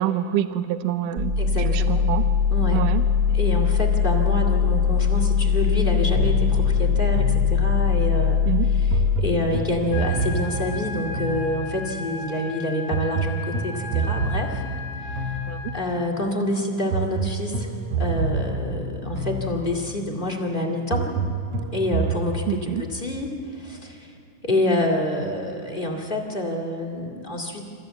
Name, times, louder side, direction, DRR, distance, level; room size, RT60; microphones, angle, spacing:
voice 1, 0.0-2.2 2.7-3.0 8.5-8.7 15.5-15.6 22.5-22.8, right 11 dB, 90° right, 11 dB, 2.3 m, -26 dB
sound 1, 1.2-9.2, left 7 dB, 35° right, 2.7 m, -21 dB
voice 2, 1.4-2.1 2.5-2.8 3.3-8.4 8.7-14.6 15.0-15.4 15.7-17.7 18.0-21.1 21.7-24.1 24.4-27.7, left 1 dB, 20° left, 0 dB, 1.8 m, -27 dB
sound 2, 6.2-8.0 8.9-12.0 12.9-16.0 16.9-19.9 20.9-22.3, right 3 dB, 60° right, 2.5 m, -28 dB
sound 3, 9.9-15.9, left 3 dB, 70° left, 3.6 m, -36 dB
27.5 x 14.5 x 8.2 m, 2.4 s
omnidirectional pair, 3.6 m